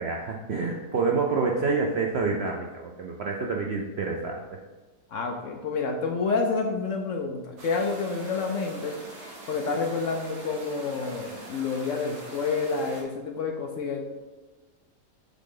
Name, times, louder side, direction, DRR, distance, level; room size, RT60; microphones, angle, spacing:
voice 1, 0.0-4.6, right 4 dB, 85° right, 1 dB, 0.5 m, -28 dB
voice 2, 5.1-9.0 9.5-14.0, left 4 dB, 65° left, 2 dB, 0.8 m, -29 dB
sound 1, 7.6-13.0, right 1 dB, 65° right, 1.6 m, -43 dB
7.1 x 3.7 x 3.8 m, 1.3 s
omnidirectional pair, 1.7 m